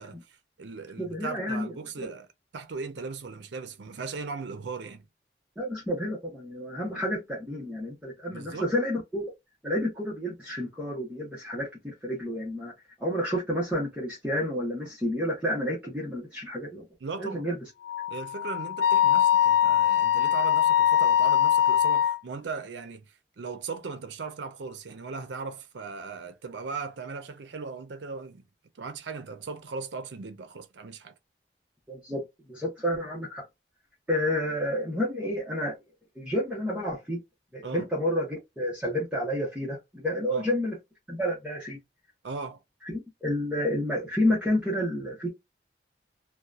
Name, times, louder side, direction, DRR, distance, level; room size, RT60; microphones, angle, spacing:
voice 1, 0.0-2.3 2.5-5.1 8.3-8.7 17.0-17.5 18.1-28.4 28.8-31.1 37.6-37.9 40.3-40.5 42.2-42.6, right 4 dB, 80° right, 0.5 m, -38 dB
voice 2, 1.0-2.1 5.6-9.2 9.6-12.7 13.0-16.8 17.2-17.6 31.9-33.4 34.1-35.8 36.2-37.2 37.5-40.8 41.1-41.8 42.9-45.3, left 1 dB, 5° right, 0.9 m, -30 dB
Wind instrument woodwind instrument, 17.8-22.2, left 10 dB, 70° left, 0.5 m, -22 dB
2.8 x 2.2 x 2.3 m
head